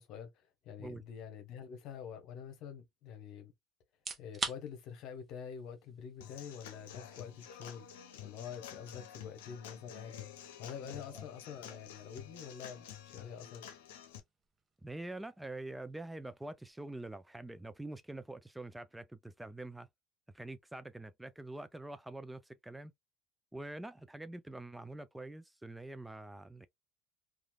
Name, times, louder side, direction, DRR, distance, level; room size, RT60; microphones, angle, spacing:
voice 1, 0.0-3.5 4.2-7.9 8.2-10.3 10.6-13.6, left 7 dB, 65° left, 1.0 m, -46 dB
sound 1, 3.9-18.7, right 4 dB, 30° right, 0.8 m, -50 dB
Human voice / Acoustic guitar / Drum, 6.2-14.2, left 10 dB, 85° left, 0.7 m, -50 dB
voice 2, 10.8-11.2 11.7-11.8 14.8-19.9 20.3-22.9 23.5-26.7, right 2 dB, 5° right, 0.3 m, -45 dB
3.1 x 2.4 x 2.3 m
supercardioid pair, 90°, 0 cm